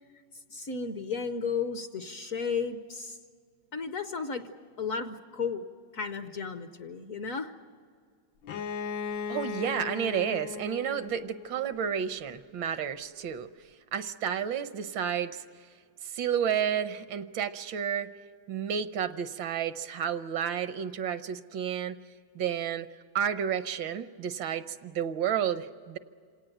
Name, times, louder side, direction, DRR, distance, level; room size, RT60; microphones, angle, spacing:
voice 1, 0.5-3.2 3.7-4.4 4.8-5.7 5.9-7.5, left 5 dB, 55° left, 9 dB, 1.0 m, -33 dB
Bowed string instrument, 8.4-12.1, left 6 dB, 70° left, 1.5 m, -37 dB
voice 2, 9.3-13.5 13.9-15.4 16.0-18.1 18.5-22.0 22.3-22.9 23.1-26.0, right 8 dB, 75° right, 12 dB, 1.5 m, -31 dB
27.0 x 18.0 x 9.1 m, 2.1 s
omnidirectional pair, 2.1 m